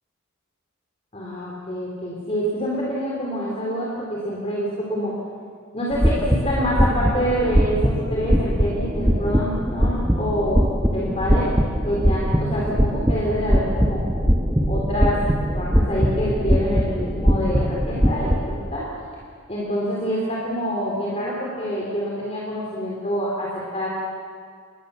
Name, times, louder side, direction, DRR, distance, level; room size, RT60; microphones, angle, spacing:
voice 1, 1.1-5.1 5.7-10.6 10.9-11.5 11.8-14.0 14.7-15.2 15.5-18.9 19.5-23.9, equal, 30° left, -4 dB, 3.8 m, -26 dB
sound 1, 5.9-18.4, equal, 10° right, 1.5 m, -21 dB
28.5 x 21.0 x 7.2 m, 2.1 s
head